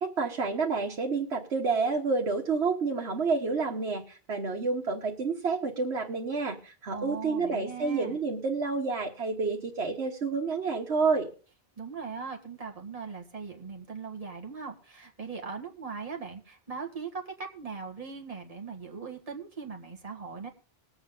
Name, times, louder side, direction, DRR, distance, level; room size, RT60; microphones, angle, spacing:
voice 1, 0.0-11.3, right 4 dB, 80° right, 0 dB, 1.6 m, -29 dB
voice 2, 6.9-8.2 11.8-20.5, right 5 dB, 35° right, 1 dB, 1.9 m, -39 dB
20.5 x 8.0 x 3.8 m, 0.38 s
omnidirectional pair, 1.1 m